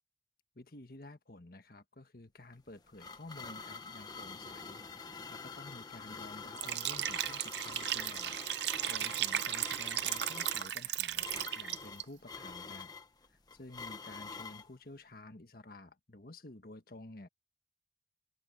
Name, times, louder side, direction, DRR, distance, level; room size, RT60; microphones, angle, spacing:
voice 1, 0.5-12.9 13.3-17.3, left 2 dB, 55° left, 1.5 m, -52 dB
sound 1, 2.5-14.7, left 4 dB, 20° left, 1.4 m, -46 dB
Liquid, 6.5-12.0, right 12 dB, 70° right, 0.5 m, -35 dB
head